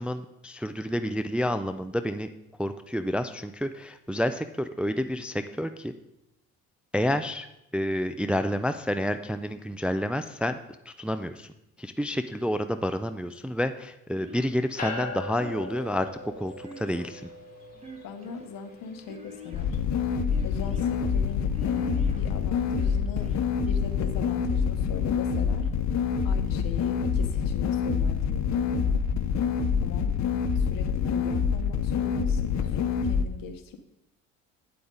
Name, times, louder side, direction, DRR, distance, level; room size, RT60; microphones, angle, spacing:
voice 1, 0.0-2.3 2.6-5.9 6.9-7.5 7.7-10.6 10.9-11.5 11.8-16.1 16.4-17.2, equal, 5° right, 9 dB, 0.4 m, -29 dB
sound 1, 14.2-14.8 15.4-15.9 16.6-17.3 17.8-18.4 19.1-19.8 20.3-20.9 21.5-22.2 22.8-23.4, equal, 20° right, 1.4 m, -45 dB
sound 2, 14.8-26.4, left 2 dB, 25° left, 2.7 m, -44 dB
voice 2, 18.0-19.8 20.4-23.3 23.6-25.7 26.2-29.0 29.8-30.2 30.5-33.8, left 5 dB, 65° left, 8 dB, 1.1 m, -40 dB
sound 3, 19.5-33.2, left 6 dB, 50° left, 0.7 m, -26 dB
8.7 x 7.8 x 3.8 m, 0.86 s
supercardioid pair, 70°, 36 cm